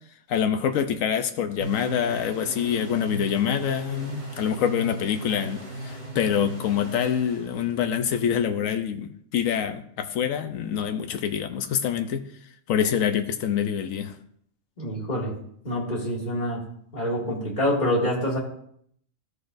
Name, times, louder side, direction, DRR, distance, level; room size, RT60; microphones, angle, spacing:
voice 1, 0.3-12.2 12.7-14.2, left 8 dB, 85° left, 8 dB, 1.1 m, -26 dB
sound 1, 1.6-8.1, right 2 dB, 50° right, 2.6 m, -37 dB
voice 2, 14.8-15.3 15.6-16.6 16.9-18.4, equal, 35° left, -5 dB, 2.4 m, -26 dB
13.5 x 6.3 x 2.6 m, 0.67 s
omnidirectional pair, 1.4 m